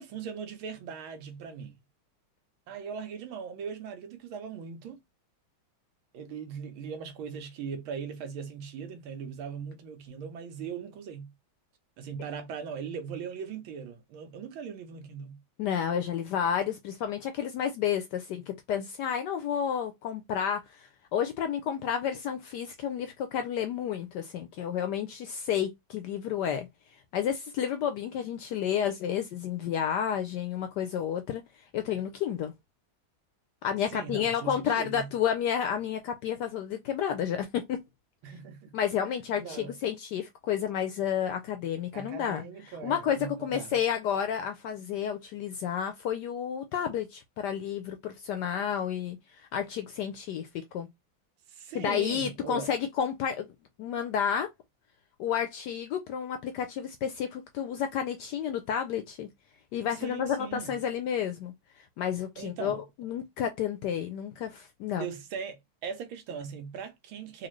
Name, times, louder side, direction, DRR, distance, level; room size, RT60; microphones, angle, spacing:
voice 1, 0.0-1.8 2.7-5.0 6.1-11.3 12.0-15.4 33.9-35.1 38.2-38.7 39.0-39.7 41.9-43.8 51.5-52.7 60.0-60.8 62.4-62.8 65.0-67.5, right 6 dB, 80° right, 1.6 m, -39 dB
voice 2, 15.6-26.7 27.1-31.4 31.7-32.5 33.6-37.8 38.7-42.4 42.8-49.2 49.5-50.5 50.7-50.9 51.7-53.4 53.8-54.5 55.2-59.3 59.7-61.5 62.0-65.1, left 8 dB, 75° left, 1.0 m, -31 dB
4.2 x 2.4 x 3.1 m
omnidirectional pair, 2.2 m